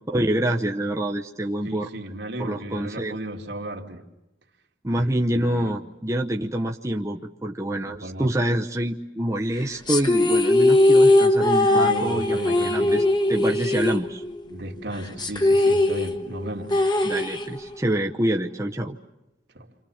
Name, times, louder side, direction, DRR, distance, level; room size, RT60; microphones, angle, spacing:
voice 1, 0.1-1.9 2.4-3.2 4.8-13.0 13.3-14.2 17.0-19.0, right 1 dB, 15° right, 0.9 m, -26 dB
voice 2, 1.6-4.1 5.0-5.8 7.8-8.3 11.7-13.0 14.5-16.8 19.5-19.7, right 1 dB, 70° right, 2.5 m, -35 dB
sound 1, 9.9-14.5 14.8-14.9 15.2-17.8, left 2 dB, 25° left, 1.3 m, -20 dB
29.5 x 26.5 x 7.2 m
head